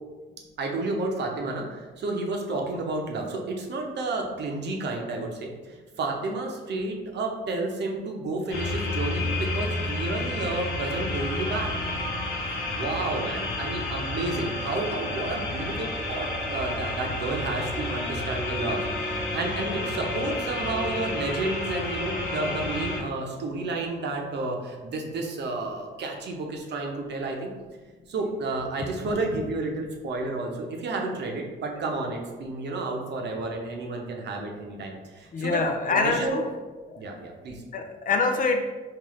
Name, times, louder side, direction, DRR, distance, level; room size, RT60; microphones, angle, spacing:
voice 1, 0.6-11.7 12.7-27.5 28.1-35.6 35.9-36.4 37.0-37.6, right 2 dB, 60° right, 1 dB, 0.8 m, -31 dB
sound 1, 8.5-23.0, left 2 dB, 80° left, 1.2 m, -30 dB
voice 2, 35.3-36.5 36.9-37.0 37.7-38.7, left 4 dB, 45° left, 5 dB, 0.4 m, -25 dB
3.8 x 2.6 x 3.1 m, 1.3 s
cardioid pair, 90°, 20 cm